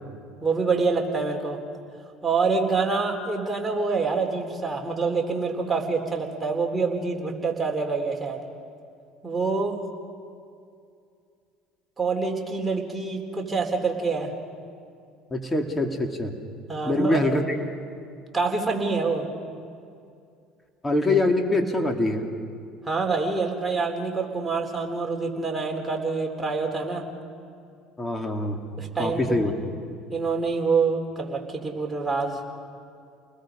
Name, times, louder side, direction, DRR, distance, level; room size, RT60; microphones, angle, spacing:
voice 1, 0.4-1.6 2.2-8.4 9.2-9.8 12.0-14.3 16.7-17.2 18.3-19.3 22.8-27.1 28.8-29.4 30.1-32.4, right 4 dB, 15° right, 1 dB, 3.9 m, -26 dB
voice 2, 15.3-16.3 16.8-17.6 20.8-22.3 28.0-28.6 29.0-29.5, left 2 dB, 20° left, 3 dB, 2.9 m, -24 dB
29.5 x 20.5 x 5.3 m, 2.4 s
hypercardioid pair, 70°, 0 cm